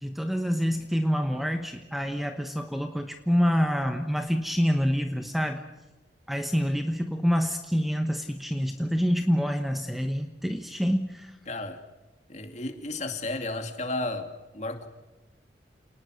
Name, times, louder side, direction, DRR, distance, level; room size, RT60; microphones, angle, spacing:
voice 1, 0.0-5.6 6.3-11.3, equal, ahead, 6 dB, 1.0 m, -27 dB
voice 2, 11.5-11.8 12.3-14.3 14.5-14.9, left 2 dB, 40° left, 5 dB, 2.6 m, -33 dB
29.0 x 19.5 x 6.5 m, 1.1 s
head